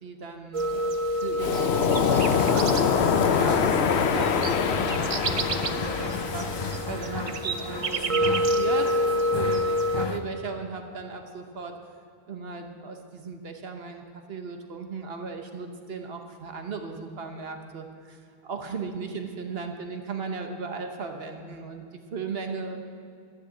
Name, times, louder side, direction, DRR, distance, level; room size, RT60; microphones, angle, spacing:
voice 1, 0.0-11.7 12.3-22.8, right 4 dB, 70° right, 5 dB, 1.2 m, -37 dB
sound 1, 0.5-10.1, equal, 40° right, 0.6 m, -28 dB
Waves surf, 1.4-6.8, left 7 dB, 85° left, 1.0 m, -24 dB
sound 2, 2.1-10.2, left 4 dB, 30° left, 0.6 m, -35 dB
13.0 x 6.7 x 8.3 m, 2.4 s
omnidirectional pair, 1.1 m